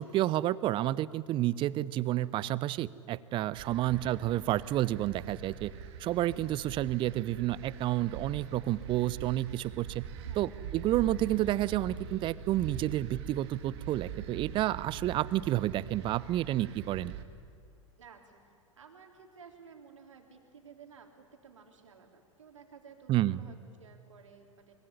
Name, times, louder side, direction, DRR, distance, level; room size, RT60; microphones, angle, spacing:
voice 1, 0.0-5.7 6.0-10.0 10.3-17.1 23.1-23.4, right 14 dB, 30° right, 20 dB, 0.7 m, -30 dB
sound 1, 3.5-17.2, right 7 dB, 50° right, 2.2 m, -43 dB
voice 2, 10.2-10.5 18.0-18.4 18.8-24.7, right 6 dB, 70° right, 4 dB, 3.6 m, -55 dB
24.0 x 23.5 x 9.9 m, 2.4 s
figure-of-eight pair, 95°, 17 cm